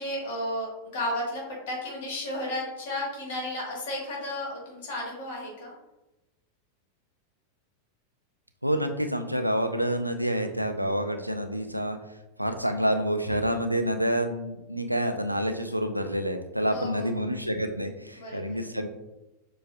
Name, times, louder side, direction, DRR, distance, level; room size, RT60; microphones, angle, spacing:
voice 1, 0.0-5.7 16.7-17.4 18.2-18.6, left 1 dB, 50° left, -2 dB, 1.4 m, -33 dB
voice 2, 8.6-12.0 12.4-18.9, equal, 90° right, 6 dB, 0.3 m, -28 dB
6.6 x 2.3 x 2.3 m, 0.99 s
figure-of-eight pair, 90°, 0 cm